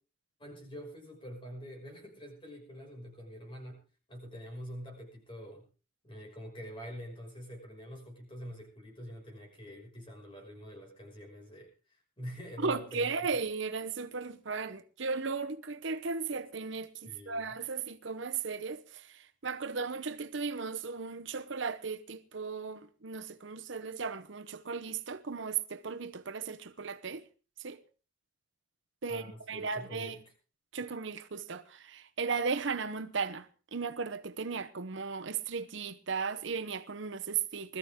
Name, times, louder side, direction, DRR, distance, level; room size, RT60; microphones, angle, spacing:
voice 1, 0.4-3.8 4.1-5.6 6.0-13.1 17.0-17.5 29.1-30.2, equal, 25° left, 5.9 m, -46 dB
voice 2, 12.6-27.2 27.6-27.8 29.0-30.2 30.7-37.8, right 5 dB, 65° right, 0.8 m, -36 dB
21.0 x 13.5 x 3.7 m
head